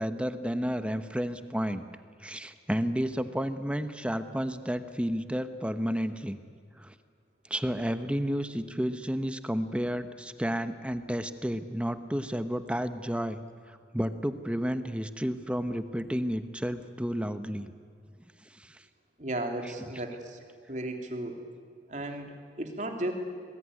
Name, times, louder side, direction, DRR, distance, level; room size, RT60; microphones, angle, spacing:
voice 1, 0.0-1.8 2.2-6.4 6.8-6.9 7.5-13.4 13.7-17.7 18.5-18.8, equal, 5° right, 10 dB, 0.9 m, -31 dB
voice 2, 19.2-20.4 20.7-21.4 21.9-23.1, right 1 dB, 45° right, 4 dB, 3.0 m, -35 dB
26.0 x 20.5 x 9.8 m, 2.1 s
head